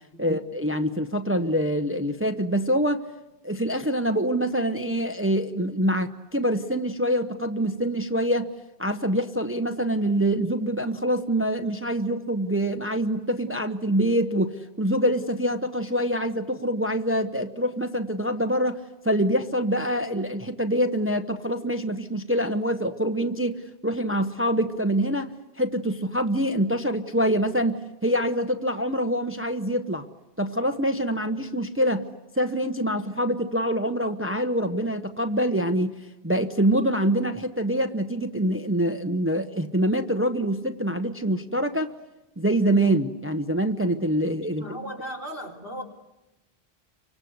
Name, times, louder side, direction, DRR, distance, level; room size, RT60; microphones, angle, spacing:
voice 1, 0.2-3.1 3.4-8.5 8.8-30.1 30.4-32.1 32.3-35.9 36.2-41.9 42.4-44.6, equal, 15° right, 7 dB, 1.0 m, -25 dB
voice 2, 44.5-45.8, right 1 dB, 60° left, 0 dB, 4.6 m, -37 dB
29.5 x 25.0 x 8.1 m, 0.96 s
omnidirectional pair, 1.0 m